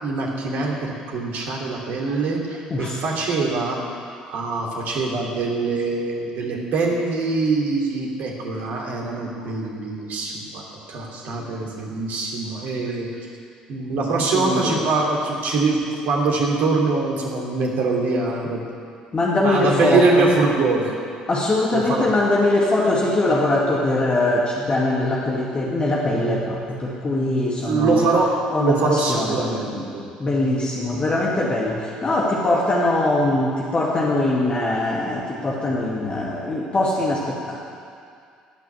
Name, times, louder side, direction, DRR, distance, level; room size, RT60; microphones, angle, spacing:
voice 1, 0.0-3.8 4.2-13.1 13.7-18.6 19.4-20.9 21.7-22.1 27.6-30.1, right 3 dB, 60° right, -1 dB, 2.8 m, -23 dB
voice 2, 14.3-14.9 19.1-20.3 21.3-28.1 28.5-29.3 30.2-37.6, left 2 dB, 30° left, -4 dB, 2.2 m, -22 dB
17.5 x 6.1 x 9.3 m, 2.3 s
figure-of-eight pair, 55°, 3 cm